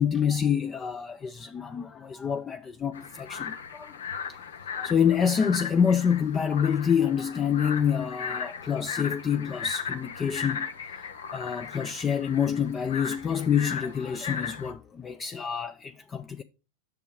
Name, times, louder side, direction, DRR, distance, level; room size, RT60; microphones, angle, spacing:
voice 1, 0.0-3.9 4.8-10.7 11.3-16.4, left 7 dB, 25° left, 0.4 m, -27 dB
sound 1, 2.9-14.7, left 6 dB, 75° left, 0.8 m, -37 dB
6.8 x 5.9 x 4.5 m
hypercardioid pair, 95°, 0 cm